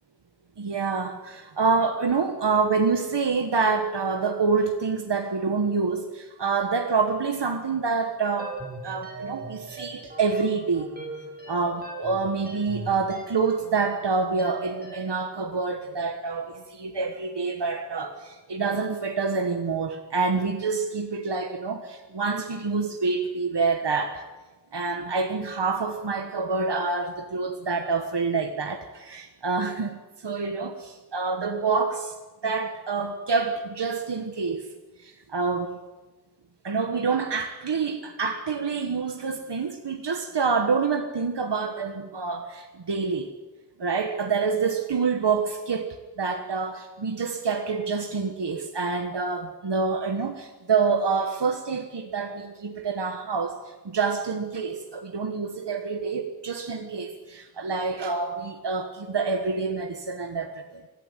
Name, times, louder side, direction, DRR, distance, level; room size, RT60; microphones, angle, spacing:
voice 1, 0.6-10.9 11.5-24.2 24.7-32.2 32.4-34.6 35.0-35.8 36.6-43.3 43.8-53.6 53.8-60.8, right 4 dB, 90° right, 5 dB, 1.6 m, -27 dB
sound 1, 8.4-15.2, right 3 dB, 25° right, 7.7 m, -40 dB
24.5 x 15.0 x 9.3 m, 1.2 s
wide cardioid pair, 60°, 40 cm